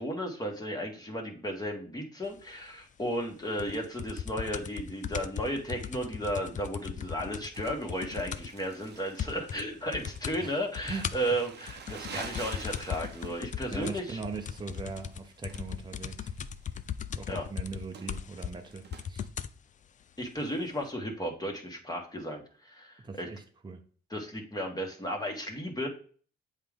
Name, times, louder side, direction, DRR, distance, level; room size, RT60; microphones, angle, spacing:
voice 1, 0.0-14.2 17.3-17.5 20.2-23.3 24.1-25.9, equal, 20° left, 1.5 m, -34 dB
sound 1, 3.6-8.6 8.9-9.0 9.2-9.6 9.9-10.4 10.7-19.6 20.4-20.5, left 8 dB, 40° left, 0.4 m, -38 dB
Crumpling crinkling, 7.5-19.1, right 6 dB, 60° right, 0.9 m, -48 dB
voice 2, 10.9-11.2 13.7-16.4 17.2-19.3 23.0-23.8, right 4 dB, 20° right, 0.9 m, -40 dB
7.9 x 3.7 x 3.6 m
cardioid pair, 90°, 20 cm